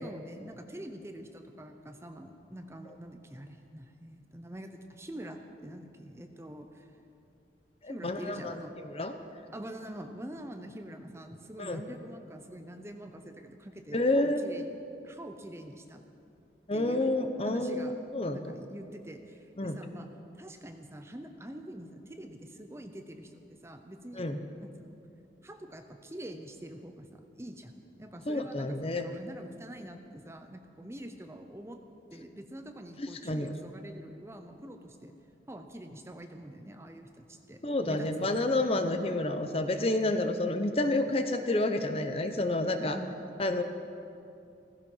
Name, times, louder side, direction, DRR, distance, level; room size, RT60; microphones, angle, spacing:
voice 1, 0.0-6.9 7.9-8.7 9.5-14.7 15.0-16.0 16.7-18.0 18.3-20.1 20.4-24.3 24.6-24.9 25.4-31.8 32.1-35.1 35.5-37.6 37.9-38.3 42.8-43.2, right 1 dB, 15° right, 6 dB, 0.8 m, -45 dB
voice 2, 7.8-8.5 8.8-9.1 11.6-11.8 13.9-14.4 16.7-18.4 19.6-19.8 24.2-24.4 28.3-29.1 33.0-33.5 37.6-43.0 43.4-43.6, left 2 dB, 35° left, 7 dB, 0.9 m, -29 dB
16.0 x 15.5 x 5.6 m, 2.6 s
head